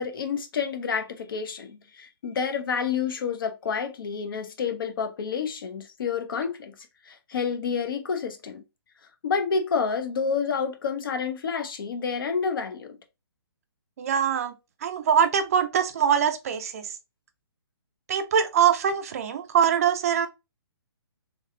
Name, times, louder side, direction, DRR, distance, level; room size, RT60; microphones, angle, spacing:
voice 1, 0.0-6.7 7.1-8.6 9.2-13.0, left 6 dB, 60° left, 0.8 m, -29 dB
voice 2, 14.0-14.5 14.8-16.9 18.1-20.3, right 8 dB, 35° right, 0.4 m, -23 dB
3.3 x 3.3 x 2.5 m
hypercardioid pair, 160°, 13 cm